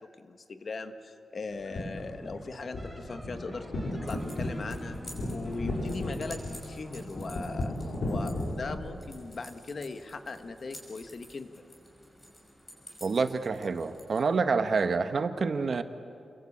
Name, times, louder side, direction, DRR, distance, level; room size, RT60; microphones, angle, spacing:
voice 1, 0.0-3.7 3.9-5.0 5.3-7.7 8.0-11.5, left 3 dB, 40° left, 8 dB, 1.3 m, -39 dB
sound 1, 1.5-8.7, left 1 dB, 60° left, 4.9 m, -35 dB
sound 2, 2.8-8.8, right 1 dB, 10° right, 2.5 m, -49 dB
sound 3, 4.0-14.3, equal, 15° left, 5.6 m, -50 dB
voice 2, 13.0-15.8, right 4 dB, 45° right, 9 dB, 1.1 m, -27 dB
29.0 x 22.5 x 8.6 m, 2.5 s
wide cardioid pair, 160°, 0 cm